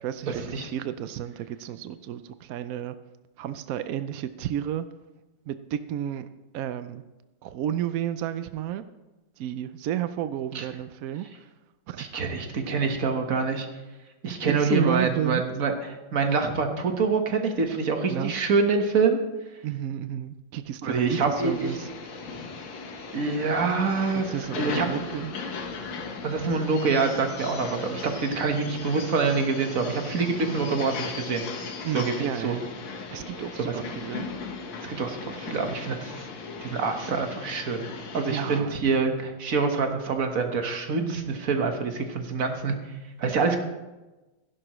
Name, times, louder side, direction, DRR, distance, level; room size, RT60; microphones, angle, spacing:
voice 1, 0.0-3.0 3.4-4.9 5.5-6.3 6.5-7.0 7.4-8.8 9.4-11.5 11.9-12.1 14.5-15.4 18.1-18.3 19.6-21.9 24.1-25.3 31.8-32.7 33.1-34.3 38.2-38.8, right 11 dB, 80° right, 12 dB, 0.8 m, -31 dB
voice 2, 12.0-13.7 14.2-19.2 20.8-21.7 23.1-24.9 26.2-31.4 31.9-32.1 32.4-32.5 34.8-36.3 36.6-37.8 38.1-42.7 43.2-43.6, right 4 dB, 50° right, 5 dB, 1.6 m, -26 dB
sound 1, 21.4-38.6, left 4 dB, 80° left, 1.9 m, -37 dB
16.0 x 11.0 x 3.1 m, 1.1 s
omnidirectional pair, 2.0 m